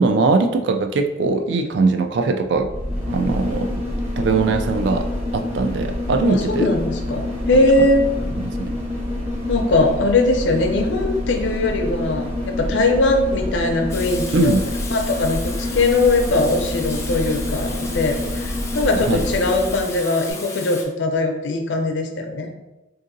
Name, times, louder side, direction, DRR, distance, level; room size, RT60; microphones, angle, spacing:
voice 1, 0.0-2.7 3.1-3.8 4.2-6.7 7.5-7.7 8.3-8.7 14.3-14.6 19.1-19.2, right 3 dB, 65° right, 6 dB, 0.3 m, -21 dB
sound 1, 2.6-19.9 20.3-20.4, left 1 dB, 35° right, 0.9 m, -27 dB
voice 2, 6.3-8.1 9.5-14.6 14.9-22.5, left 2 dB, 75° left, 4 dB, 0.5 m, -20 dB
Water tap faucet / Sink (filling or washing), 13.9-20.8, left 3 dB, 15° left, 0.3 m, -35 dB
3.6 x 2.7 x 2.6 m, 1.0 s
head